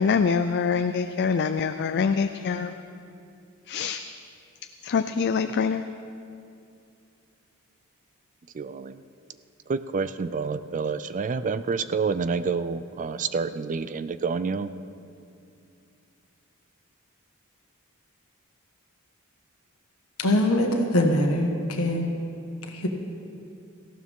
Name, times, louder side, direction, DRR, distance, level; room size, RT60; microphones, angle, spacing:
voice 1, 0.0-2.8 3.7-4.0 4.8-5.8, left 5 dB, 50° left, 0.4 m, -25 dB
voice 2, 8.5-9.0 9.7-14.7, right 5 dB, 35° right, 0.4 m, -28 dB
voice 3, 20.2-22.1 22.7-22.9, left 1 dB, 65° left, 1.6 m, -23 dB
18.0 x 15.0 x 3.7 m
head